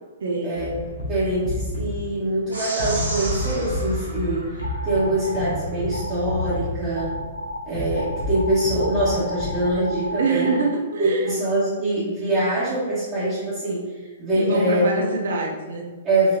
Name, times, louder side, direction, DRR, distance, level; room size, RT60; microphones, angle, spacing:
voice 1, 0.2-0.6 10.2-11.3 14.4-15.9, right 3 dB, 65° right, 0 dB, 0.7 m, -25 dB
sound 1, 0.5-10.1, left 1 dB, 65° left, 1.1 m, -31 dB
voice 2, 1.1-7.1 7.6-10.5 11.0-15.0 16.0-16.4, right 1 dB, 25° right, -13 dB, 1.5 m, -24 dB
sound 2, 2.5-5.2, right 1 dB, 85° right, 1.0 m, -34 dB
sound 3, 4.6-5.6 5.9-6.6 6.9-7.6 7.9-10.7, left 1 dB, 85° left, 0.5 m, -33 dB
4.3 x 3.0 x 2.8 m, 1.3 s
figure-of-eight pair, 115°, 0 cm